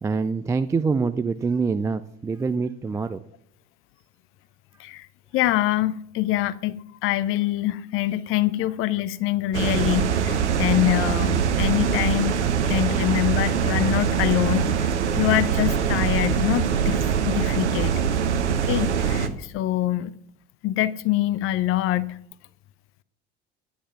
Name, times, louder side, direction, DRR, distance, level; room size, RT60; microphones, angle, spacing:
voice 1, 0.0-3.2, right 4 dB, 10° right, 0.3 m, -25 dB
voice 2, 5.3-12.4 12.7-17.0 17.3-17.9 18.6-20.1 20.6-22.2, left 14 dB, 40° left, 0.6 m, -25 dB
sound 1, 9.5-19.3, right 7 dB, 75° right, 1.1 m, -23 dB
10.0 x 9.9 x 6.0 m
figure-of-eight pair, 65°, 35 cm